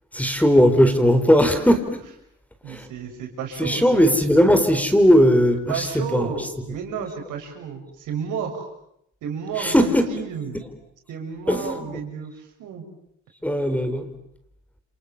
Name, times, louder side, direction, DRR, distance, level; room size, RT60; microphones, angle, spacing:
voice 1, 0.1-2.0 2.7-2.9 3.6-6.5 9.6-10.1 11.5-12.0 13.4-14.1, equal, 5° left, 8 dB, 4.3 m, -18 dB
voice 2, 2.6-4.0 5.7-8.7 9.2-10.6 11.1-12.9, right 7 dB, 85° right, 3 dB, 6.7 m, -32 dB
29.5 x 27.0 x 7.3 m, 0.75 s
cardioid pair, 90°, 30 cm